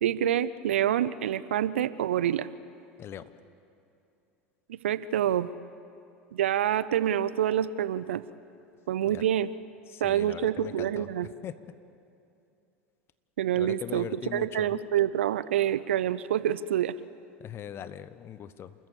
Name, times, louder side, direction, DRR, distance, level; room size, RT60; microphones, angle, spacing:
voice 1, 0.0-2.5 4.7-5.5 6.3-8.2 8.9-9.5 10.0-11.3 13.4-14.1 14.3-16.9, right 10 dB, 75° right, 16 dB, 0.6 m, -27 dB
voice 2, 3.0-3.3 9.1-9.2 9.9-11.1 11.4-11.5 13.5-14.7 17.4-18.7, left 9 dB, 40° left, 14 dB, 1.1 m, -40 dB
28.5 x 14.0 x 8.4 m, 2.7 s
hypercardioid pair, 80°, 7 cm